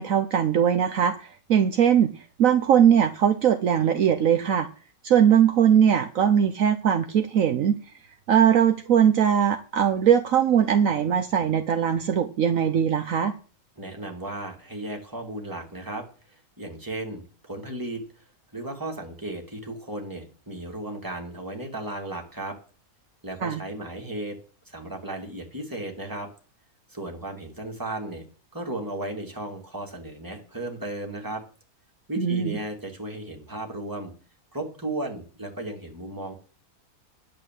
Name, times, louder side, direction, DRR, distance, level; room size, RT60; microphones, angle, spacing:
voice 1, 0.0-4.7 5.0-7.8 8.3-13.3 23.4-23.6 32.2-32.5, right 8 dB, 65° right, 8 dB, 1.2 m, -20 dB
voice 2, 13.8-18.2 18.5-22.6 23.2-24.4 24.7-26.3 26.9-28.2 28.5-31.4 32.1-34.1 34.5-36.3, right 1 dB, 15° right, 1 dB, 2.8 m, -35 dB
10.5 x 8.2 x 7.8 m, 0.39 s
omnidirectional pair, 1.6 m